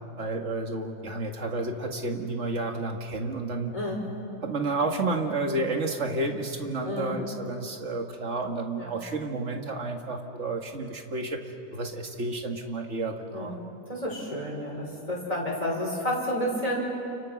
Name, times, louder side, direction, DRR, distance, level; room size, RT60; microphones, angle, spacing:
voice 1, 0.2-3.7 4.4-11.4 11.7-13.6, right 2 dB, 45° right, 3 dB, 2.2 m, -31 dB
voice 2, 3.7-4.1 6.8-7.2 8.8-9.0 13.3-13.6 13.9-16.8, equal, 20° left, -3 dB, 6.0 m, -30 dB
30.0 x 29.5 x 6.2 m, 2.8 s
omnidirectional pair, 1.7 m